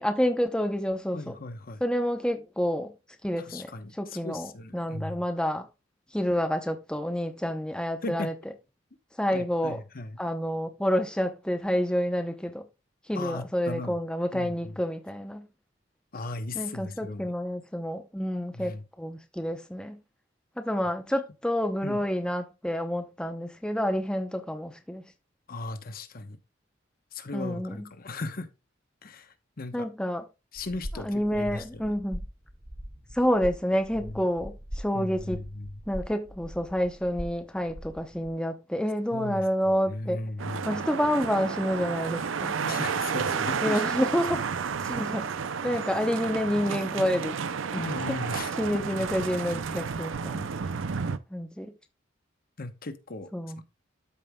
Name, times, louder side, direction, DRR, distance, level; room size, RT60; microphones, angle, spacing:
voice 1, 0.0-1.4 1.8-2.9 3.2-3.7 4.0-5.7 6.1-8.3 9.2-9.8 10.2-12.6 13.1-15.5 16.5-20.0 20.6-25.0 27.3-27.8 29.7-30.2 30.9-32.2 33.1-35.4 35.9-40.2 40.6-42.6 43.6-44.4 44.9-45.3 45.6-47.4 47.7-47.8 48.6-50.5 51.3-51.7 53.3-53.6, equal, 5° left, 0.8 m, -28 dB
voice 2, 1.1-1.8 3.4-5.2 8.0-8.3 9.3-10.2 13.1-14.0 14.3-14.8 16.1-17.3 18.5-18.8 21.8-22.0 25.5-26.4 27.1-28.5 29.0-29.9 30.5-31.9 34.0-34.3 34.9-35.8 39.1-39.4 39.8-40.8 42.6-43.8 47.8-48.5 48.9-49.0 49.5-49.7 52.6-53.3, left 2 dB, 50° left, 1.0 m, -37 dB
sound 1, 30.6-38.3, equal, 35° right, 1.8 m, -41 dB
sound 2, 40.4-51.2, right 6 dB, 85° right, 0.6 m, -31 dB
13.0 x 5.3 x 2.3 m
head